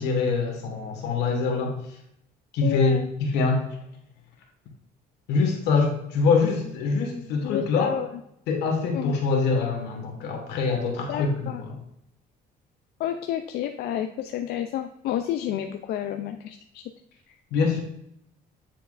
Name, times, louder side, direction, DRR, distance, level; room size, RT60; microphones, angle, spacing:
voice 1, 0.0-1.8 2.5-3.6 5.3-7.9 8.5-11.7 17.5-17.8, left 4 dB, 90° left, 2 dB, 1.6 m, -24 dB
voice 2, 2.6-3.1 7.4-8.2 8.9-9.2 11.1-11.6 13.0-16.8 17.3-17.4, left 11 dB, 70° left, 7 dB, 0.4 m, -30 dB
9.0 x 4.5 x 2.5 m, 0.78 s
cardioid pair, 110°, 17 cm